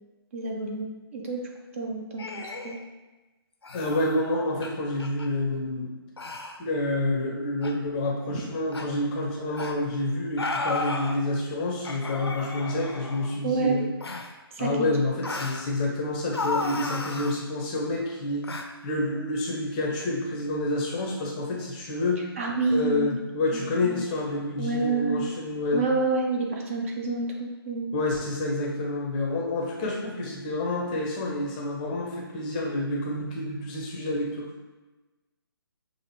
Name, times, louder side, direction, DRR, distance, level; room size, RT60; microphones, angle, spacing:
voice 1, 0.3-1.4 1.7-2.8 8.3-8.4 13.4-13.8 14.5-14.9 22.4-23.2 23.8-24.0 24.6-25.2 25.7-27.9, right 3 dB, 30° right, 0 dB, 0.5 m, -28 dB
sound 1, 2.2-2.8 3.6-4.0 4.6-4.7 5.0-5.3 6.2-6.6 7.6-7.7 8.7-8.9 9.5-9.8 10.4-11.2 11.8-13.4 14.0-14.3 15.2-15.7 16.3-17.4 18.4-18.7, left 3 dB, 75° left, 0.5 m, -33 dB
voice 2, 3.7-5.9 6.6-13.9 14.6-18.4 18.8-22.2 22.7-25.8 27.9-34.5, left 2 dB, 20° left, -1 dB, 0.6 m, -28 dB
6.5 x 2.5 x 3.0 m, 1.2 s
figure-of-eight pair, 140°, 13 cm